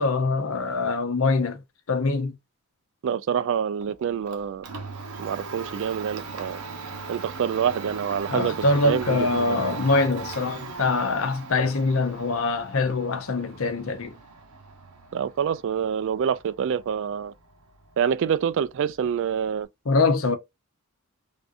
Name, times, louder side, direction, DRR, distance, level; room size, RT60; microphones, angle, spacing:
voice 1, 0.0-1.6 1.9-2.4 8.3-14.1 19.9-20.4, left 3 dB, 60° left, 0.6 m, -24 dB
voice 2, 3.0-4.7 5.2-6.6 7.1-8.6 8.8-9.6 15.1-17.3 18.0-19.7, right 8 dB, 60° right, 0.3 m, -26 dB
Domestic sounds home sounds, 3.8-19.6, right 4 dB, 85° right, 0.9 m, -39 dB
3.4 x 2.6 x 2.5 m
head